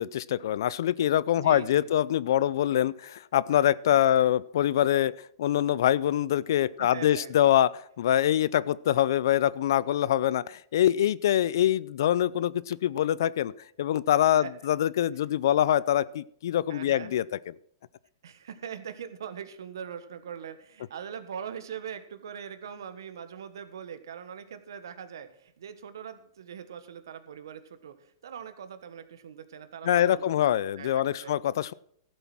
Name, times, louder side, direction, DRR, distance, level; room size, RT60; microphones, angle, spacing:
voice 1, 0.0-5.1 5.4-7.7 8.0-13.5 13.8-17.5 29.8-31.7, left 11 dB, 70° left, 21 dB, 0.5 m, -24 dB
voice 2, 1.4-1.9 4.1-4.3 6.8-7.3 14.3-14.5 16.7-17.1 18.2-30.3 30.8-31.3, right 8 dB, 80° right, 11 dB, 1.4 m, -42 dB
14.0 x 8.0 x 6.1 m, 0.65 s
hypercardioid pair, 120°, 2 cm